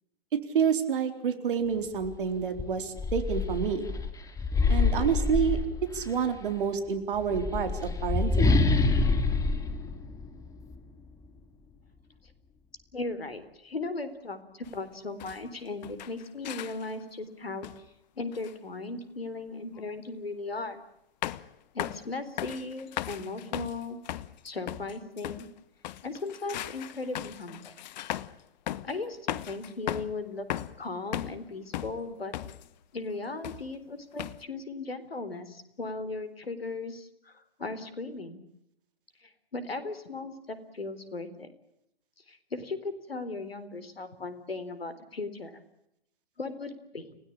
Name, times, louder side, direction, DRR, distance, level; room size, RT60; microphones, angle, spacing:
voice 1, 0.5-3.9 4.7-5.6 5.9-8.6, right 7 dB, 60° right, 9 dB, 4.1 m, -28 dB
sound 1, 2.0-2.2 2.6-6.2 7.1-10.8, left 3 dB, 10° left, 2.7 m, -26 dB
voice 2, 12.9-17.7 18.2-20.8 21.7-24.0 24.4-25.5 26.0-27.7 28.8-30.5 30.8-32.3 32.9-38.4 39.2-41.5 42.3-45.6 46.4-47.2, left 3 dB, 85° left, 13 dB, 4.0 m, -37 dB
sound 2, 14.6-14.8 15.2-15.5 15.8-17.0 17.6-17.9 18.3-18.5 19.7-19.9 21.2-21.5 21.8-22.1 22.4-25.5 25.8-28.4 28.7-29.0 29.3-30.2 30.5-31.5 31.7-32.7 33.4-33.8 34.2-34.4, left 13 dB, 50° left, 1.3 m, -37 dB
30.0 x 18.0 x 8.7 m, 0.81 s
figure-of-eight pair, 115°, 29 cm